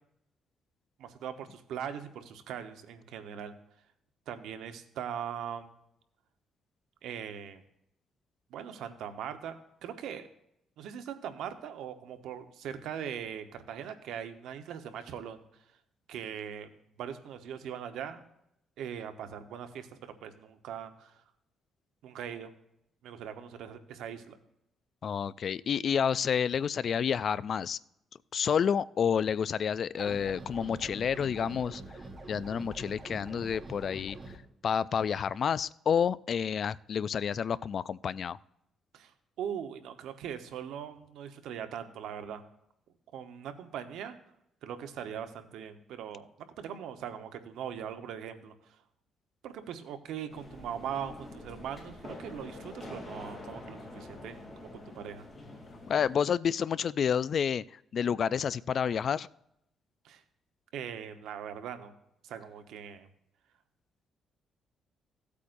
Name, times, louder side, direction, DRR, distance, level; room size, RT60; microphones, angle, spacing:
voice 1, 1.0-3.5 4.3-5.7 7.0-7.6 8.5-10.3 10.8-15.4 16.1-16.7 17.0-18.2 18.8-21.1 22.0-22.5 23.0-24.4 38.9-39.1 39.4-42.4 43.1-44.2 44.6-46.3 46.6-48.5 49.4-55.3 60.0-60.2 60.7-61.9 62.2-63.1, right 8 dB, 85° right, 8 dB, 1.0 m, -40 dB
voice 2, 25.0-27.8 28.3-31.8 32.3-34.2 34.6-38.4 55.9-59.3, left 7 dB, 50° left, 19 dB, 0.3 m, -29 dB
sound 1, 30.0-34.4, right 2 dB, 25° right, 1.5 m, -45 dB
sound 2, 50.3-56.2, left 2 dB, 20° left, 2.8 m, -46 dB
16.0 x 8.4 x 2.6 m, 0.79 s
cardioid pair, 125°, 0 cm